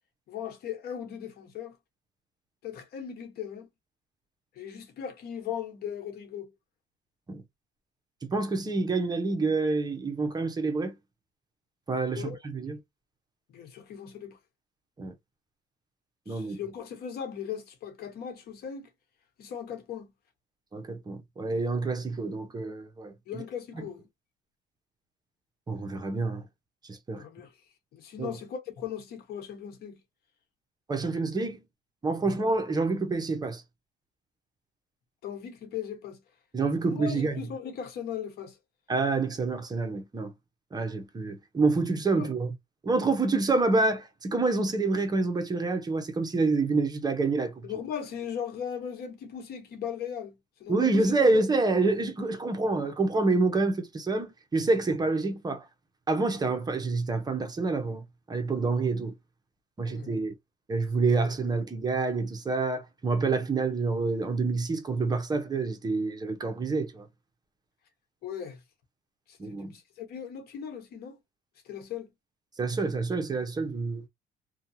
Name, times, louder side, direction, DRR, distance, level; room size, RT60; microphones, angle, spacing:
voice 1, 0.3-1.8 2.6-3.7 4.5-6.5 12.2-12.4 13.5-14.4 16.3-18.9 19.4-20.1 23.3-24.1 27.1-27.5 27.9-30.0 32.2-32.4 35.2-36.2 36.8-38.6 42.1-42.3 47.6-51.3 59.8-60.1 61.1-61.3 68.2-68.6 69.3-71.2 71.6-72.1, left 8 dB, 65° left, 1.0 m, -38 dB
voice 2, 8.3-10.9 11.9-12.8 15.0-15.1 16.3-16.6 20.7-23.1 25.7-26.4 26.9-27.2 28.2-28.3 30.9-31.6 32.0-33.6 36.5-37.3 38.9-40.3 40.7-42.5 42.8-47.7 50.7-55.6 56.1-59.1 59.8-60.3 60.7-67.0 69.4-69.7 72.6-74.0, right 3 dB, 25° right, 0.8 m, -27 dB
2.7 x 2.2 x 2.7 m
cardioid pair, 110°, 17 cm